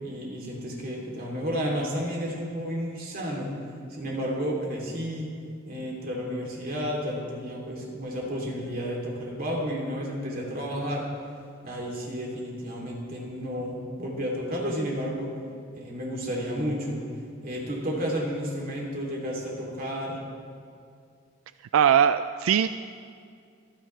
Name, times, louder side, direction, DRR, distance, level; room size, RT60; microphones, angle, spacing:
voice 1, 0.0-3.5 3.9-5.3 5.6-11.1 11.6-15.3 15.7-17.0 17.4-20.2, equal, 45° right, -2 dB, 2.9 m, -31 dB
voice 2, 21.7-22.7, right 8 dB, 90° right, 12 dB, 0.3 m, -20 dB
24.5 x 10.0 x 3.3 m, 2.3 s
head